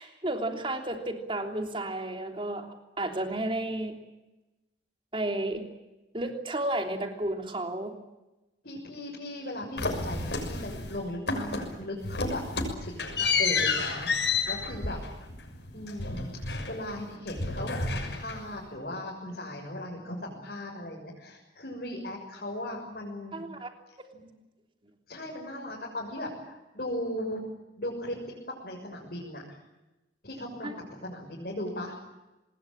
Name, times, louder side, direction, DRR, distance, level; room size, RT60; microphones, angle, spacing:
voice 1, 0.0-2.7 3.0-4.0 5.1-5.6 6.1-8.0 23.3-23.7 30.6-30.7, right 1 dB, 30° right, 5 dB, 3.2 m, -32 dB
voice 2, 8.6-12.4 12.8-13.1 13.4-15.0 15.7-23.4 24.1-24.2 25.1-27.4 27.8-28.2 28.6-29.6 30.2-32.0, left 1 dB, 55° left, -3 dB, 6.8 m, -37 dB
sound 1, 9.8-11.0 11.3-11.8 12.0-17.0 17.3-18.6, left 4 dB, 70° left, 6.4 m, -30 dB
25.5 x 21.0 x 8.9 m, 1.0 s
head